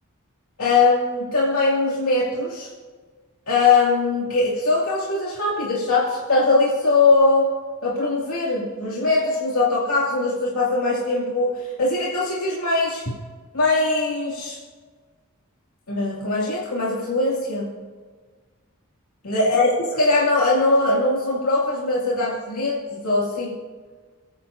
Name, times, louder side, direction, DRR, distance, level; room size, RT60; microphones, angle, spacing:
voice 1, 0.6-2.7 3.5-13.1 13.5-14.6 15.9-17.8 19.2-23.6, left 3 dB, 90° left, -5 dB, 2.5 m, -21 dB
28.5 x 10.0 x 2.7 m, 1.5 s
head